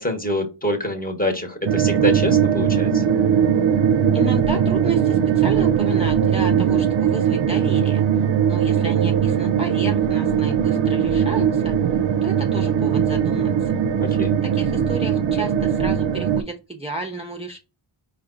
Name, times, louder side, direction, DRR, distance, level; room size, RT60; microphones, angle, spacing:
voice 1, 0.0-3.0 14.2-14.3, left 1 dB, 20° left, 2 dB, 1.0 m, -25 dB
sound 1, 1.7-16.4, right 8 dB, 65° right, 0.5 m, -20 dB
voice 2, 4.1-8.0 8.5-11.7 12.2-13.7 14.1-14.2 14.4-17.6, right 3 dB, 15° right, 0 dB, 0.5 m, -32 dB
4.8 x 2.3 x 3.8 m, 0.30 s
wide cardioid pair, 90°, 49 cm